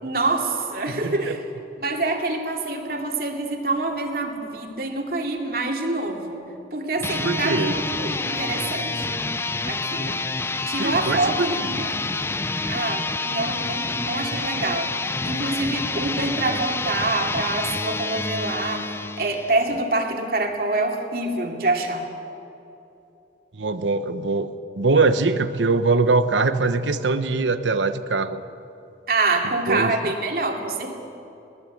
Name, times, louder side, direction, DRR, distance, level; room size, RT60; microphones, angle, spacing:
voice 1, 0.0-1.4 1.8-6.4 6.7-9.2 9.6-10.2 10.6-11.9 12.6-15.0 15.2-22.1 29.1-31.0, right 2 dB, 55° right, 2 dB, 2.7 m, -26 dB
voice 2, 1.0-1.4 7.2-7.7 10.8-11.7 23.6-24.5 24.8-28.4 29.7-29.9, right 3 dB, 90° right, 10 dB, 1.0 m, -22 dB
sound 1, 6.9-19.7, left 3 dB, 15° left, 0.5 m, -28 dB
21.5 x 19.5 x 8.7 m, 2.9 s
head